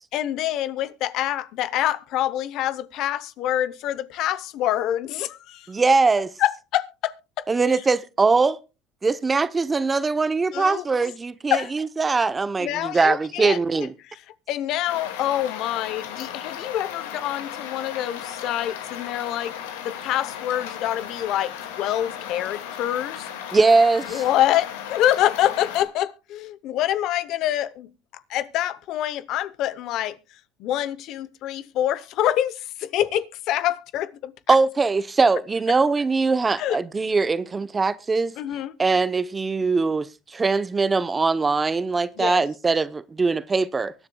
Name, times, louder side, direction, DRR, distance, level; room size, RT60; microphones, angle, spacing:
voice 1, 0.1-5.7 6.4-7.5 10.5-10.8 11.5-11.7 12.6-13.9 14.5-19.5 19.8-23.3 24.1-27.9 28.3-30.2 30.6-34.6 36.6-36.8 38.4-38.8 42.2-42.4, left 12 dB, 60° left, 0.8 m, -26 dB
voice 2, 5.7-6.3 7.5-8.6 9.0-13.9 23.5-24.2 34.5-38.3 38.8-40.1 40.3-43.9, right 4 dB, 20° right, 0.7 m, -21 dB
sound 1, 14.9-25.8, left 9 dB, 90° left, 1.9 m, -36 dB
23.5 x 9.7 x 2.3 m
supercardioid pair, 100°, 0 cm